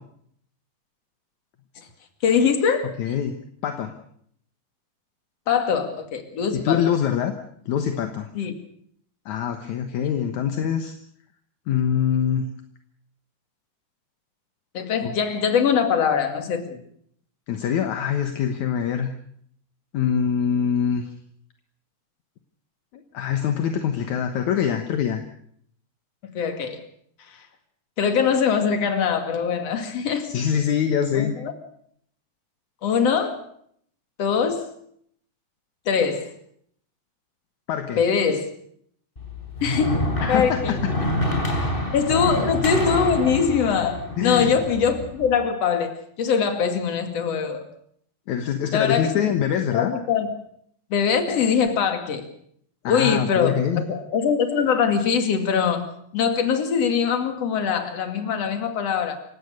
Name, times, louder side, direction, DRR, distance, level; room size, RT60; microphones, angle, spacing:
voice 1, 2.2-2.9 5.5-6.8 8.3-8.5 10.0-10.3 14.7-16.8 26.3-26.8 27.3-27.4 28.0-30.3 31.1-31.5 32.8-33.4 34.2-34.6 35.9-36.3 38.0-38.5 39.6-40.8 41.9-47.6 48.7-49.3 49.7-50.3 50.9-52.3 52.9-59.2, left 6 dB, 45° left, 7 dB, 3.0 m, -22 dB
voice 2, 3.0-3.3 3.6-3.9 6.5-7.3 7.7-8.3 9.3-10.9 11.7-12.5 15.0-15.2 17.5-19.1 19.9-21.1 23.1-25.2 30.2-31.3 37.7-38.0 40.2-40.8 44.2-44.6 48.3-49.9 52.8-53.8, left 8 dB, 60° left, 7 dB, 2.2 m, -24 dB
sound 1, 39.2-45.3, left 1 dB, 15° left, 4.0 m, -27 dB
28.0 x 16.5 x 6.6 m, 0.66 s
omnidirectional pair, 4.6 m